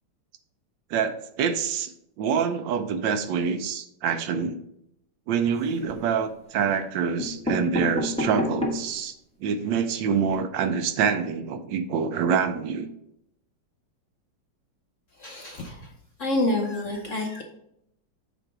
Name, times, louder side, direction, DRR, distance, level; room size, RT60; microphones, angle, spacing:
voice 1, 0.9-1.9 2.2-4.6 5.3-9.1 9.4-12.9, right 6 dB, 80° right, 9 dB, 1.3 m, -26 dB
sound 1, 5.4-6.1 6.8-6.9 7.2-9.0 9.5-9.6 9.8-9.9 10.2-10.3, left 1 dB, 5° left, 0.6 m, -30 dB
voice 2, 15.2-15.9 16.2-17.4, left 2 dB, 60° left, 2 dB, 0.8 m, -28 dB
7.8 x 3.5 x 4.7 m, 0.78 s
omnidirectional pair, 2.1 m